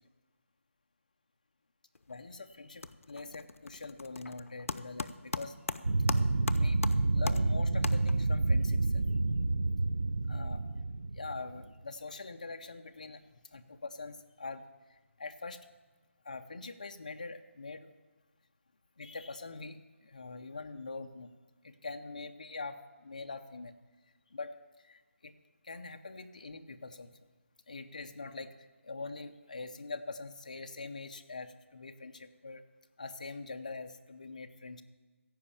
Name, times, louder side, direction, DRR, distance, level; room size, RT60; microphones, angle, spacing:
sound 1, 1.9-2.3 2.6-8.5, left 3 dB, 75° left, 0.6 m, -40 dB
voice 1, 2.1-5.6 6.6-9.0 10.3-10.6 11.1-13.2 13.5-14.6 14.9-15.6 16.2-17.9 19.0-21.3 21.6-23.7 24.3-24.6 24.8-25.3 25.6-27.2 27.7-28.5 28.8-32.6 33.0-34.8, left 3 dB, 30° left, 7 dB, 0.5 m, -44 dB
sound 2, 5.8-11.6, right 2 dB, 75° right, 0.7 m, -29 dB
15.0 x 5.3 x 8.5 m, 1.3 s
figure-of-eight pair, 180°, 7 cm